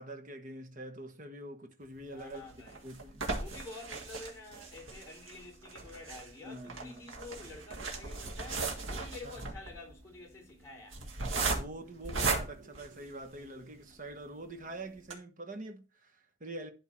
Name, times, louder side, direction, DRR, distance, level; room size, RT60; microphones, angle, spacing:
voice 1, 0.0-2.4 2.8-3.4 6.4-7.1 9.2-9.5 11.3-16.7, right 2 dB, 40° right, 1.1 m, -45 dB
voice 2, 2.1-2.8 3.3-11.0, left 3 dB, 15° left, 3.4 m, -49 dB
sound 1, 2.2-13.6 14.1-14.2 14.5-14.6 15.0-15.1, right 3 dB, 85° right, 1.6 m, -37 dB
11.0 x 3.7 x 4.5 m
head